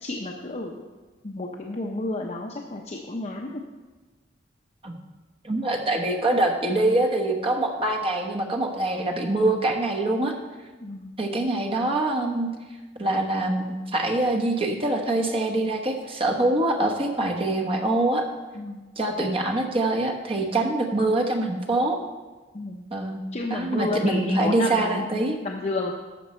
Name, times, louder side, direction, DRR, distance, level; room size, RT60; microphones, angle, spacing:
voice 1, 0.0-0.8 1.2-3.6 10.8-11.2 18.5-18.8 22.5-22.8 23.3-25.0 25.4-25.9, left 2 dB, 35° left, 0 dB, 0.7 m, -31 dB
voice 2, 5.4-10.3 11.2-12.5 13.0-18.3 19.0-22.0 22.9-23.2 23.5-25.4, right 2 dB, 30° right, 1 dB, 1.1 m, -24 dB
12.5 x 7.1 x 4.4 m, 1.3 s
head